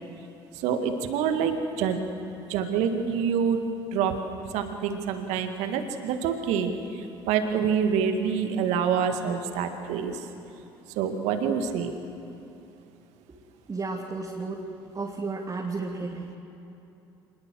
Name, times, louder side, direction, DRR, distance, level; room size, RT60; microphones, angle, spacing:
voice 1, 0.5-2.0 2.5-3.6 3.9-4.1 4.5-10.2 11.0-11.9, right 7 dB, 70° right, 6 dB, 2.0 m, -26 dB
voice 2, 13.7-14.6 14.9-16.3, right 3 dB, 30° right, -1 dB, 2.8 m, -32 dB
25.5 x 21.0 x 7.7 m, 3.0 s
hypercardioid pair, 60°, 12 cm